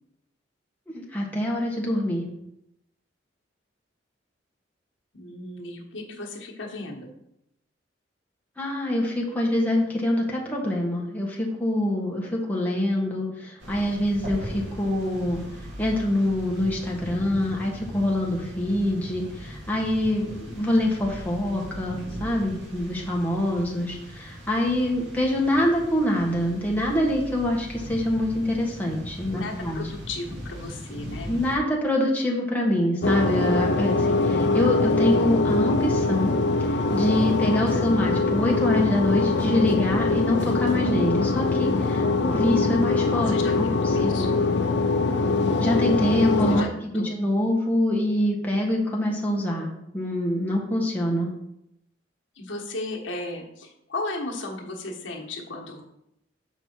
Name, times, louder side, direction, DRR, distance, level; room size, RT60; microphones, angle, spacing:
voice 1, 0.9-2.3 8.6-15.4 15.8-29.8 31.3-36.4 36.9-43.7 44.0-44.3 45.6-46.7 46.9-51.3, left 1 dB, 10° left, -3 dB, 1.5 m, -25 dB
voice 2, 5.1-7.1 29.3-31.3 37.5-37.9 43.2-44.3 46.6-46.7 46.9-47.1 52.3-55.8, left 2 dB, 85° left, -1 dB, 1.4 m, -35 dB
sound 1, 13.6-31.6, equal, 70° right, 2.2 m, -39 dB
sound 2, 33.0-46.6, left 3 dB, 65° left, 0.5 m, -23 dB
7.1 x 5.5 x 4.5 m, 0.81 s
head